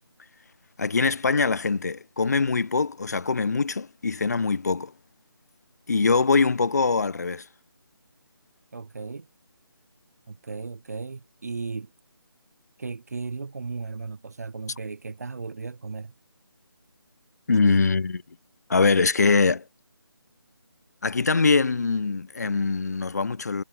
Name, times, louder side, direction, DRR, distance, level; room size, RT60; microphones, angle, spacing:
voice 1, 0.8-4.9 5.9-7.4 17.5-18.2 18.7-19.6 21.0-23.6, left 4 dB, 40° left, 0.8 m, -23 dB
voice 2, 8.7-9.3 10.3-11.9 12.8-16.1, right 4 dB, 40° right, 0.7 m, -35 dB
figure-of-eight pair, 155°, 13 cm